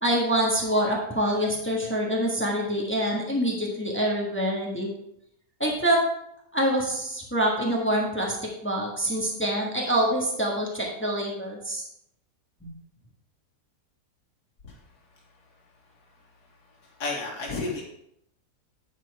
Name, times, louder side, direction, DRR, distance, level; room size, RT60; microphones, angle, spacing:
voice 1, 0.0-4.9 5.6-6.0 6.5-8.4 8.6-11.8 12.6-12.7, right 1 dB, 10° left, -2 dB, 1.3 m, -25 dB
voice 2, 17.0-17.8, left 3 dB, 80° left, -3 dB, 2.4 m, -30 dB
9.5 x 4.3 x 4.7 m, 0.76 s
omnidirectional pair, 1.7 m